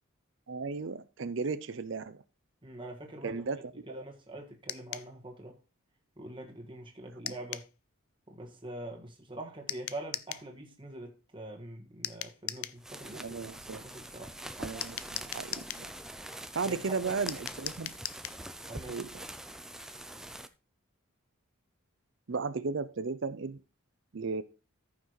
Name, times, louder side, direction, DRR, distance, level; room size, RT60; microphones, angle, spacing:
voice 1, 0.5-2.2 3.2-4.1 7.2-7.3 13.1-13.8 14.6-15.9 16.5-17.9 18.9-19.2 22.3-23.6 24.1-24.4, right 4 dB, 55° right, 0.5 m, -35 dB
voice 2, 2.6-3.4 3.9-5.6 6.2-7.6 8.3-13.4 13.7-14.3 16.7-17.2 18.7-19.0, right 1 dB, 25° right, 1.7 m, -44 dB
sound 1, 4.7-5.1 7.3-7.7 9.7-10.5 12.0-12.8 14.8-15.9 17.3-18.4, left 13 dB, 75° left, 0.5 m, -39 dB
sound 2, 12.8-20.5, right 1 dB, ahead, 0.4 m, -44 dB
14.0 x 5.9 x 3.1 m
head